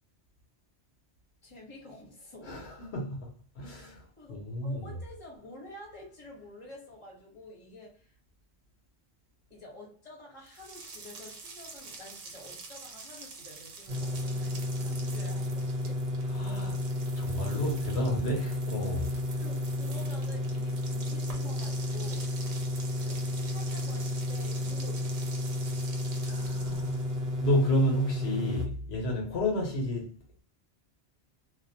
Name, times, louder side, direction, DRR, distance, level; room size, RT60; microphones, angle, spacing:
voice 1, 1.4-2.7 4.0-8.2 9.5-16.0 17.5-17.8 19.4-22.3 22.9-25.4, left 1 dB, 30° left, 1.0 m, -49 dB
voice 2, 2.4-4.0 4.3-4.9 16.3-16.8 17.2-19.1 26.2-27.0 27.4-30.1, left 1 dB, 75° left, 1.0 m, -31 dB
sound 1, 10.5-27.3, right 4 dB, 90° right, 0.9 m, -47 dB
sound 2, 13.9-28.7, left 1 dB, 60° right, 0.7 m, -32 dB
2.4 x 2.0 x 2.7 m
omnidirectional pair, 1.1 m